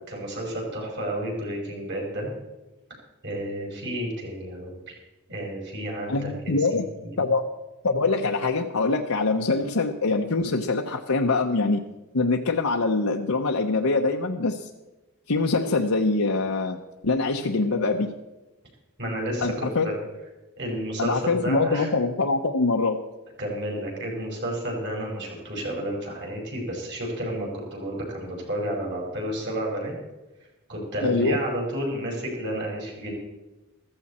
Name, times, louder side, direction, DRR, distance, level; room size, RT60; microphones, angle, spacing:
voice 1, 0.1-2.3 3.2-5.0 5.3-7.2 19.0-19.9 20.6-21.9 23.4-29.9 30.7-33.1, right 1 dB, 50° right, -1 dB, 5.5 m, -31 dB
voice 2, 6.1-6.8 7.2-7.4 7.8-11.8 12.1-14.7 15.3-16.8 17.0-18.1 19.4-19.9 21.0-23.0 31.0-31.4, left 3 dB, 75° left, 2 dB, 0.9 m, -24 dB
15.0 x 14.5 x 4.3 m, 1.1 s
head